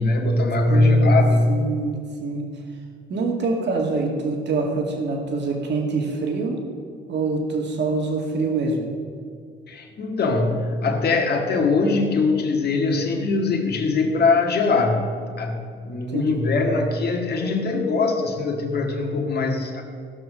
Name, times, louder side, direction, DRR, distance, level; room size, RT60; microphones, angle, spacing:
voice 1, 0.0-1.5 9.7-15.0 15.4-19.8, left 3 dB, 55° left, 1 dB, 1.8 m, -21 dB
voice 2, 0.7-1.2 1.5-2.5 3.1-6.6 7.1-8.9 16.1-16.4, right 3 dB, 60° right, 1 dB, 2.2 m, -25 dB
15.5 x 6.2 x 6.4 m, 2.2 s
cardioid pair, 90°, 20 cm